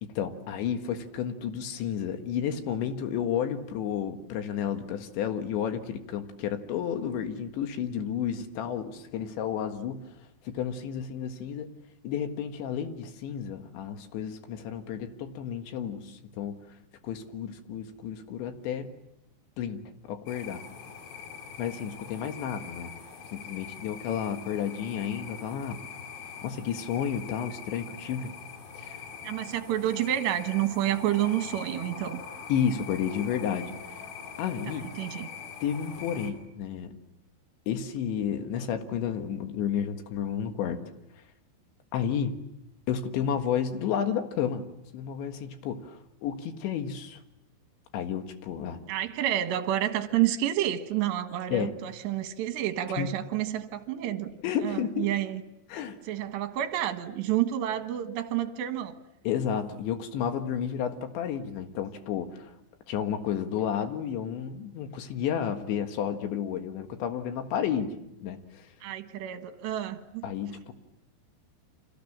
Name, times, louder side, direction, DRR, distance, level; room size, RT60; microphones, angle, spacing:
voice 1, 0.0-10.1 10.5-11.7 12.0-16.6 17.0-18.9 19.6-20.6 21.6-22.9 23.3-25.8 26.4-28.3 28.8-29.0 32.5-33.7 34.4-34.9 35.6-36.9 37.7-40.8 41.9-42.4 42.9-44.7 44.9-47.2 47.9-48.8 51.5-51.7 53.0-53.2 54.4-55.1 55.7-56.0 59.3-62.5 62.9-67.9 68.2-68.7 70.2-70.7, left 8 dB, 70° left, 7 dB, 3.8 m, -31 dB
sound 1, 20.3-36.3, left 6 dB, 55° left, 4.2 m, -43 dB
voice 2, 29.2-32.2 34.7-35.3 48.9-54.3 54.6-55.4 56.1-59.0 68.8-70.3, right 12 dB, 70° right, 8 dB, 3.3 m, -29 dB
30.0 x 26.0 x 7.4 m, 0.84 s
omnidirectional pair, 5.6 m